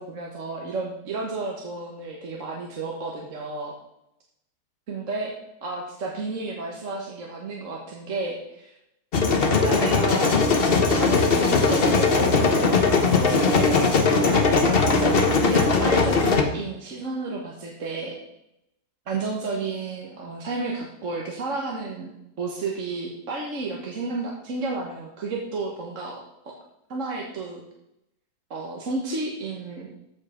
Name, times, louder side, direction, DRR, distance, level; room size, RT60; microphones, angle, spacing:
voice 1, 0.0-3.7 4.9-5.3 5.6-8.7 9.4-10.4 10.6-12.5 13.2-18.2 19.1-22.1 22.4-26.5 26.9-27.6 28.5-30.0, right 3 dB, 50° right, -1 dB, 1.6 m, -32 dB
sound 1, 9.1-16.4, left 4 dB, 40° left, 1.1 m, -20 dB
14.0 x 5.4 x 5.0 m, 0.83 s
omnidirectional pair, 1.8 m